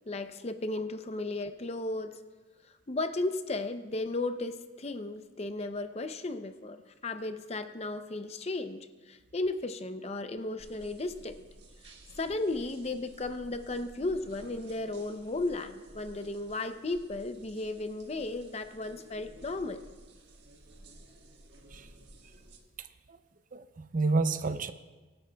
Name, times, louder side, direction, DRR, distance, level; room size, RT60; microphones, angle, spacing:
voice 1, 0.1-2.2 2.9-11.4 11.8-19.8, left 2 dB, 35° left, 9 dB, 0.6 m, -35 dB
sound 1, 10.6-22.6, right 1 dB, 60° right, 1.6 m, -54 dB
voice 2, 22.8-23.2 23.5-24.7, right 3 dB, 45° right, 11 dB, 0.5 m, -30 dB
24.0 x 11.0 x 2.3 m, 1.3 s
head